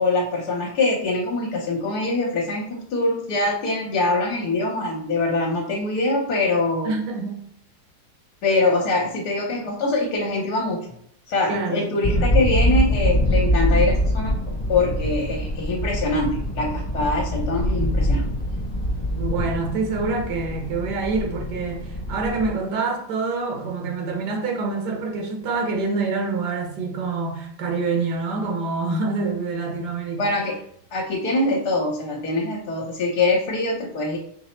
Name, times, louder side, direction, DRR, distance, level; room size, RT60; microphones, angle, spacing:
voice 1, 0.0-6.9 8.4-10.8 11.3-14.4 14.7-18.2 30.2-30.6 30.9-34.2, left 2 dB, 75° left, -1 dB, 1.3 m, -23 dB
voice 2, 6.8-7.4 11.5-11.9 19.1-30.3, right 3 dB, 80° right, 1 dB, 1.5 m, -26 dB
sound 1, 12.0-22.5, equal, 35° left, 1.0 m, -24 dB
5.4 x 2.0 x 4.2 m, 0.68 s
omnidirectional pair, 1.8 m